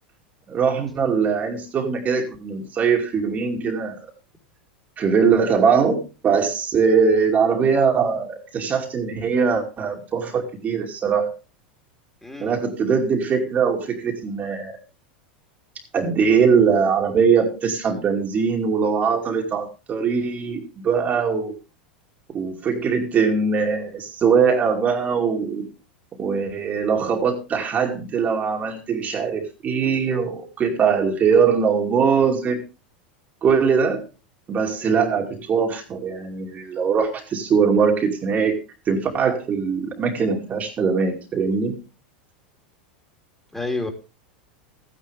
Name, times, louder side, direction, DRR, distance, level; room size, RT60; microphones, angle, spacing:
voice 1, 0.5-4.1 5.0-11.4 12.4-14.8 15.9-21.5 22.3-25.7 26.2-32.6 33.4-34.1 34.5-38.6 38.9-41.8, right 6 dB, 30° right, 2 dB, 2.6 m, -21 dB
voice 2, 12.2-12.5 34.8-35.2 43.5-43.9, left 2 dB, 5° left, 2 dB, 3.2 m, -30 dB
14.0 x 10.0 x 3.4 m, 0.32 s
hypercardioid pair, 95°, 5 cm